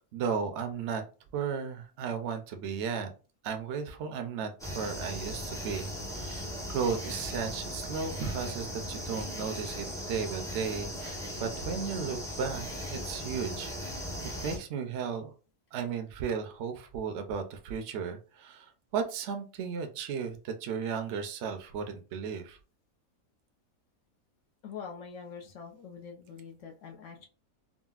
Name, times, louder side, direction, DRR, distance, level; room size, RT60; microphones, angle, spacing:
voice 1, 0.1-1.0 1.3-3.1 3.4-14.1 14.4-15.3 15.7-22.6, right 6 dB, 65° right, 6 dB, 0.7 m, -35 dB
sound 1, 4.6-14.6, equal, 5° left, 0.6 m, -38 dB
voice 2, 24.6-27.3, left 6 dB, 65° left, 2 dB, 0.9 m, -44 dB
3.8 x 2.0 x 2.3 m, 0.35 s
omnidirectional pair, 1.5 m